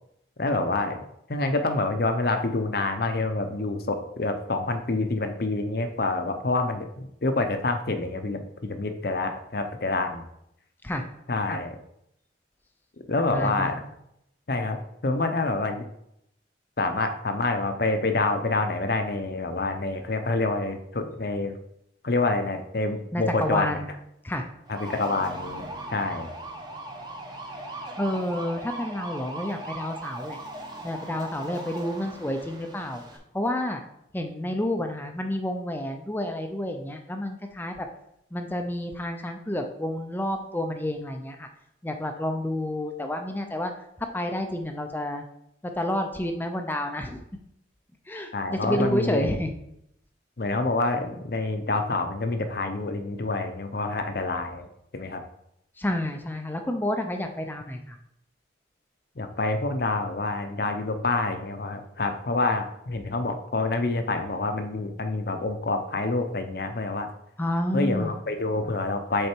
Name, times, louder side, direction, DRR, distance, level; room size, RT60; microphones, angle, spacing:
voice 1, 0.4-1.0 1.3-10.3 11.3-11.8 13.1-13.9 14.5-15.8 16.8-21.6 22.0-23.8 24.7-25.7 25.9-26.3 48.3-49.3 50.4-55.2 59.2-67.1 67.7-69.3, left 2 dB, 55° left, 7 dB, 0.7 m, -27 dB
voice 2, 13.1-13.7 23.1-23.9 24.2-24.5 28.0-30.4 30.8-33.0 33.3-33.8 34.1-37.9 38.3-41.5 41.8-43.7 44.1-45.2 45.6-47.2 48.1-49.5 55.8-58.0 67.4-68.1, left 1 dB, 10° left, 5 dB, 0.5 m, -29 dB
sound 1, 24.7-33.2, right 2 dB, 20° right, 0.8 m, -39 dB
6.5 x 4.2 x 4.5 m, 0.78 s
head